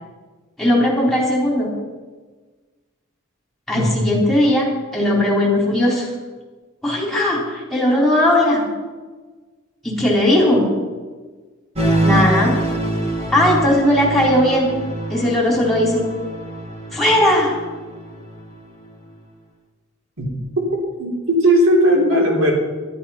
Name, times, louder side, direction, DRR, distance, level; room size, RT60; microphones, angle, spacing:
voice 1, 0.6-1.7 3.7-4.7 4.9-6.1 6.8-8.7 9.8-10.6 12.0-12.5 13.3-14.7 15.1-16.0 16.9-17.6, left 1 dB, ahead, -4 dB, 3.9 m, -17 dB
voice 2, 3.7-4.2 20.2-20.3 21.0-22.5, equal, 80° right, -2 dB, 3.8 m, -17 dB
sound 1, 11.7-18.6, right 1 dB, 30° right, 1.9 m, -24 dB
12.5 x 12.0 x 5.8 m, 1.4 s
head